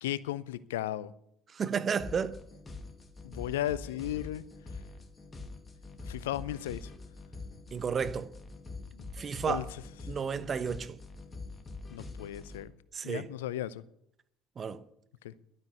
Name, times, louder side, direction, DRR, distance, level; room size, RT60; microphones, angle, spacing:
voice 1, 0.0-1.1 3.2-4.4 6.1-6.9 8.9-9.1 9.5-9.7 11.9-12.7 13.0-13.8 15.2-15.3, left 13 dB, 75° left, 0.5 m, -35 dB
voice 2, 1.5-2.4 7.7-8.3 9.2-9.7 10.1-11.0 12.9-13.3 14.6-14.8, right 6 dB, 35° right, 1.0 m, -32 dB
sound 1, 2.0-12.7, left 3 dB, 25° left, 2.1 m, -45 dB
12.0 x 9.1 x 7.9 m
figure-of-eight pair, 60°, 0 cm